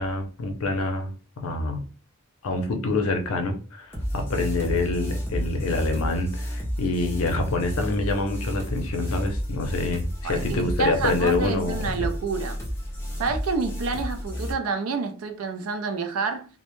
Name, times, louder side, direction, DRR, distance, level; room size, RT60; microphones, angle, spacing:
voice 1, 0.0-1.8 2.4-11.9, left 2 dB, 75° left, 0.5 m, -26 dB
sound 1, 3.9-14.5, equal, 10° left, 0.5 m, -31 dB
voice 2, 10.2-12.6 13.2-16.5, right 4 dB, 75° right, 0.4 m, -28 dB
2.1 x 2.0 x 2.9 m
head